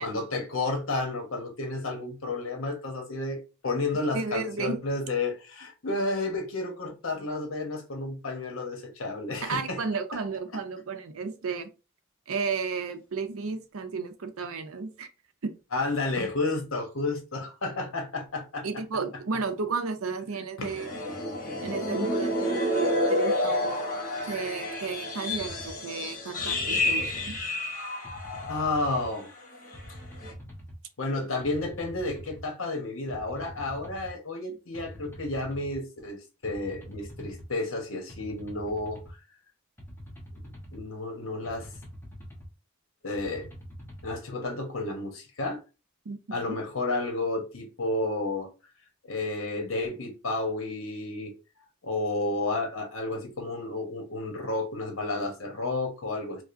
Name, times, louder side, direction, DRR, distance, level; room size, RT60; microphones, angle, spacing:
voice 1, 0.0-9.8 10.1-10.2 15.7-18.7 20.6-20.8 28.4-29.3 31.0-39.0 40.7-41.7 43.0-43.5 44.0-45.6 46.3-48.5 49.0-51.3 51.8-56.4, left 2 dB, 70° left, 0.9 m, -31 dB
voice 2, 4.1-4.8 9.4-11.7 12.3-15.1 15.4-15.6 18.6-20.9 21.6-23.8 24.2-27.4 46.1-46.6, right 4 dB, 85° right, 0.6 m, -33 dB
sound 1, 20.6-29.2 29.5-29.8 30.2-30.3, left 1 dB, 40° left, 0.9 m, -30 dB
sound 2, 25.3-25.7 26.4-27.4 28.0-29.1 29.7-30.8 31.4-32.4 33.1-34.1 34.7-35.8 36.4-37.5 38.1-39.1 39.8-40.8 41.4-42.5 43.1-44.2, equal, 10° left, 1.0 m, -44 dB
4.8 x 2.0 x 2.5 m
head